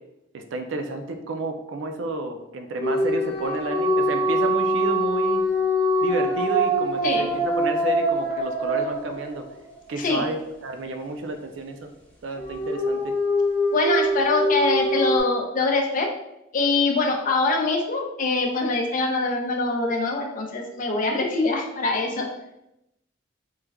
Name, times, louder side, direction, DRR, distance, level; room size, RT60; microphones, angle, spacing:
voice 1, 0.3-5.4 6.0-9.4 9.9-11.9 12.2-13.2, right 2 dB, 75° right, 6 dB, 0.4 m, -31 dB
sound 1, 2.8-9.7 12.4-15.2, equal, 5° left, 1.1 m, -24 dB
voice 2, 13.7-16.1 16.5-22.3, left 3 dB, 45° left, 2 dB, 0.5 m, -23 dB
3.1 x 2.2 x 3.4 m, 0.87 s
head